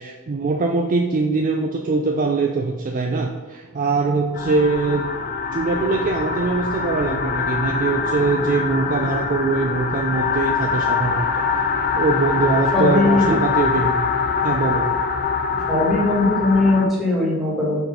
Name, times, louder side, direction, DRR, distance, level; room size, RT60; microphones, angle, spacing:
voice 1, 0.0-5.1 5.5-11.5 11.9-14.1 14.4-15.0 15.5-15.6, right 3 dB, 35° right, 3 dB, 0.4 m, -22 dB
sound 1, 4.3-16.9, left 5 dB, 40° left, 0.4 m, -23 dB
voice 2, 12.7-13.3 15.7-17.8, left 2 dB, ahead, -6 dB, 1.9 m, -19 dB
4.7 x 3.9 x 5.1 m, 1.3 s
head